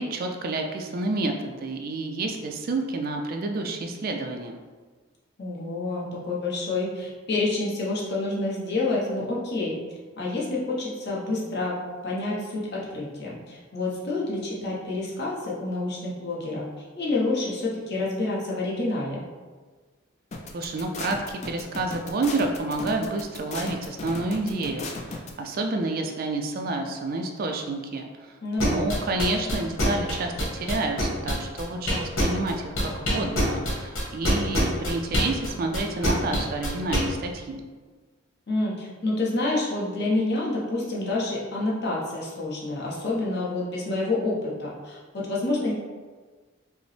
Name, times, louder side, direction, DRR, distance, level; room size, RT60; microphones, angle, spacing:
voice 1, 0.0-4.6 20.5-28.1 28.6-37.6, right 2 dB, 45° right, 4 dB, 0.3 m, -29 dB
voice 2, 5.4-9.8 10.2-11.7 12.0-16.6 17.0-19.2 28.4-28.8 38.5-45.7, left 2 dB, 55° left, -5 dB, 0.9 m, -28 dB
sound 1, 20.3-25.3, left 3 dB, 35° left, 0.4 m, -35 dB
sound 2, 28.6-32.5 32.8-37.0, left 1 dB, 85° left, 1.3 m, -25 dB
5.0 x 2.0 x 3.2 m, 1.4 s
head